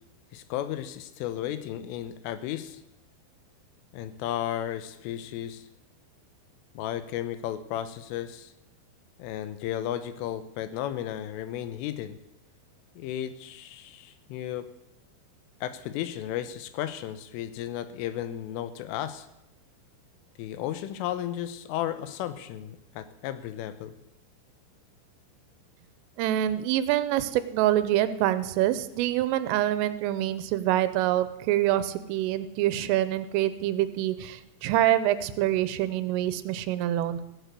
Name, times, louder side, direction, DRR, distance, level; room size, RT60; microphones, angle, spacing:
voice 1, 0.3-2.8 3.9-5.7 6.7-8.5 9.2-12.2 13.0-14.7 15.6-19.3 20.4-23.9, left 11 dB, 85° left, 11 dB, 3.5 m, -34 dB
voice 2, 26.2-37.2, right 13 dB, 85° right, 13 dB, 3.4 m, -26 dB
16.0 x 9.2 x 8.2 m, 0.87 s
omnidirectional pair, 5.7 m